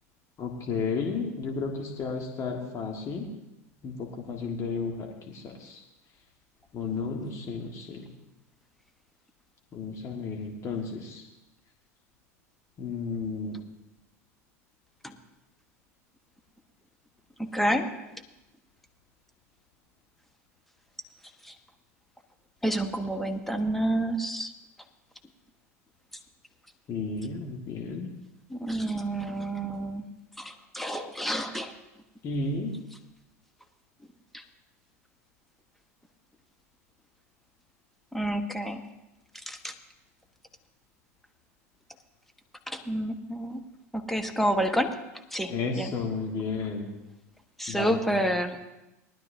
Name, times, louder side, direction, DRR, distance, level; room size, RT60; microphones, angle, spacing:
voice 1, 0.4-3.3 3.8-5.8 6.7-8.1 9.7-11.3 12.8-13.6 26.9-28.1 32.2-32.8 45.5-46.9 47.7-48.2, left 4 dB, 40° left, 2 dB, 1.6 m, -33 dB
voice 2, 17.4-17.9 22.6-24.5 28.5-30.0 30.4-31.7 38.1-38.8 39.5-39.7 42.7-43.6 43.9-44.9 45.3-45.9 47.6-48.6, right 1 dB, ahead, 5 dB, 1.3 m, -29 dB
19.5 x 12.0 x 2.7 m, 0.97 s
hypercardioid pair, 80°, 8 cm